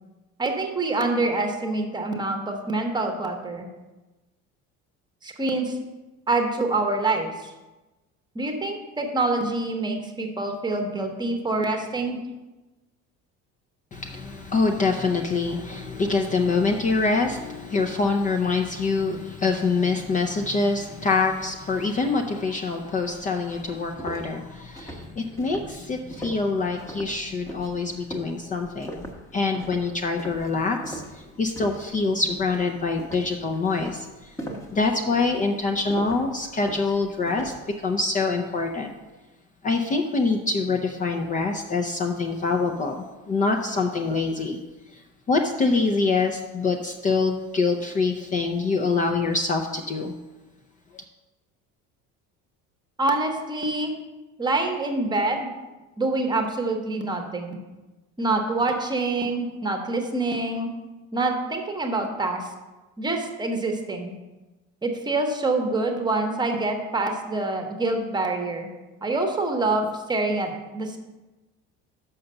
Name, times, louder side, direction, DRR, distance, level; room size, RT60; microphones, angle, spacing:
voice 1, 0.4-3.7 5.2-5.8 6.3-7.5 8.3-12.2 53.0-53.9 54.4-55.5 56.0-57.6 58.2-60.7 61.1-62.5 63.0-64.1 64.8-68.7 69.0-71.0, right 2 dB, 15° right, 4 dB, 1.0 m, -26 dB
voice 2, 13.9-34.4 34.7-37.5 37.8-38.9 39.6-44.6 44.9-45.0 45.3-50.1 50.9-51.0, left 3 dB, 25° left, 3 dB, 0.6 m, -25 dB
sound 1, 23.0-23.1 23.5-31.9 32.2-32.6 33.0-37.7, right 1 dB, 10° left, 1.0 m, -39 dB
6.5 x 5.9 x 6.5 m, 1.1 s
cardioid pair, 145°, 29 cm